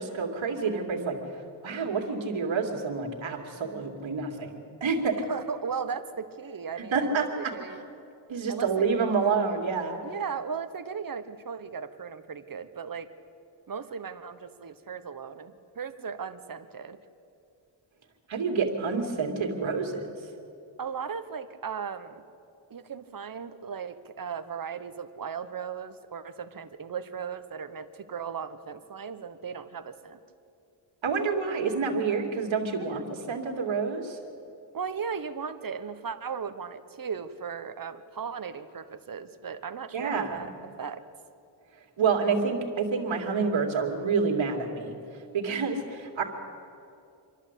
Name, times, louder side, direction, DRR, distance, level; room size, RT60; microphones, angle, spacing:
voice 1, 0.0-4.5 4.8-5.1 6.9-7.5 8.3-10.0 18.3-20.0 31.0-34.2 39.9-40.5 42.0-46.2, right 5 dB, 70° right, 3 dB, 2.8 m, -28 dB
voice 2, 5.3-7.8 8.5-8.9 10.0-13.1 13.7-17.0 20.8-22.2 22.7-30.2 32.8-33.0 34.7-40.5 40.8-41.0, right 6 dB, 45° right, 11 dB, 1.2 m, -37 dB
27.0 x 11.5 x 8.4 m, 2.6 s
cardioid pair, 80°, 48 cm